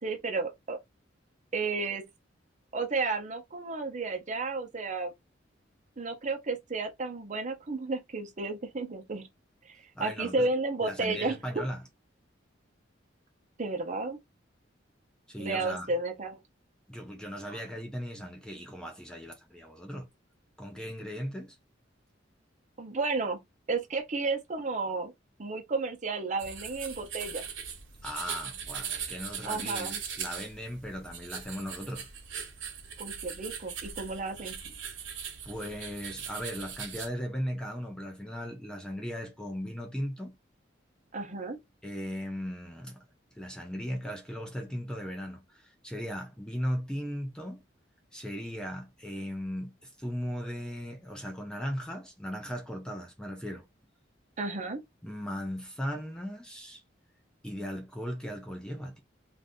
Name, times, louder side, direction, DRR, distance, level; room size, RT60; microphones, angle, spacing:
voice 1, 0.0-0.8 1.5-2.0 2.7-5.1 6.0-9.3 9.7-11.7 13.6-14.2 15.4-16.4 17.5-17.6 22.8-23.4 23.7-25.1 25.4-27.5 29.4-30.0 33.0-34.6 41.1-41.6 54.4-54.8, right 3 dB, 40° right, 0.8 m, -32 dB
voice 2, 10.0-10.5 10.8-11.8 15.3-15.9 16.9-20.1 20.6-21.6 28.0-32.1 35.4-40.3 41.8-43.0 43.3-47.6 48.1-53.6 55.0-56.8 57.4-59.0, equal, 5° left, 0.5 m, -37 dB
sound 1, 26.4-37.1, right 7 dB, 90° right, 1.0 m, -40 dB
2.6 x 2.6 x 3.5 m
head